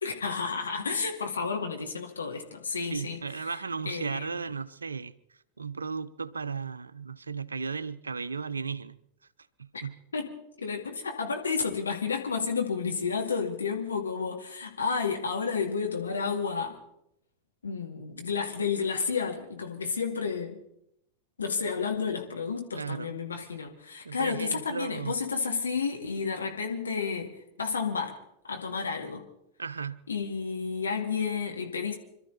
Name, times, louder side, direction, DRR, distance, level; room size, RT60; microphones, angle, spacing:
voice 1, 0.0-3.6 3.9-4.4 10.1-16.8 17.6-20.6 21.4-28.2 28.5-29.2 30.1-32.0, left 5 dB, 75° left, 2.5 m, -31 dB
voice 2, 2.9-5.1 5.6-9.0 9.6-10.0 22.7-23.1 24.0-25.2 29.6-30.0, right 5 dB, 75° right, 0.7 m, -35 dB
26.0 x 13.0 x 4.2 m
figure-of-eight pair, 90°, 0 cm